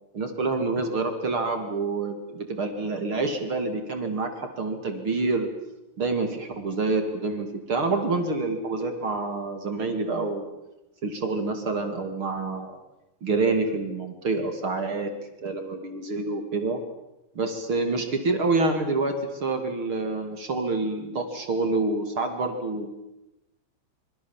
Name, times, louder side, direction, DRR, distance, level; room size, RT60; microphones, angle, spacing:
voice 1, 0.1-5.5 6.0-10.5 11.0-12.8 13.2-15.1 15.4-16.8 17.3-22.9, right 3 dB, 35° right, 6 dB, 2.4 m, -27 dB
26.0 x 24.5 x 7.3 m, 0.93 s
omnidirectional pair, 5.6 m